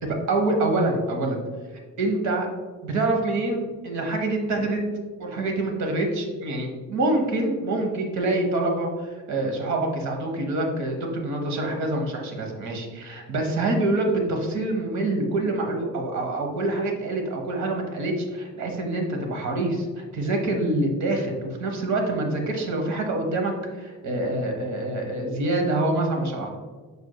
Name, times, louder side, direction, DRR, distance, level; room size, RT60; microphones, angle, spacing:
voice 1, 0.0-1.4 2.0-2.5 2.8-4.8 5.2-26.5, right 2 dB, 70° right, 2 dB, 1.0 m, -26 dB
5.1 x 4.6 x 2.2 m, 1.4 s
cardioid pair, 90°, 30 cm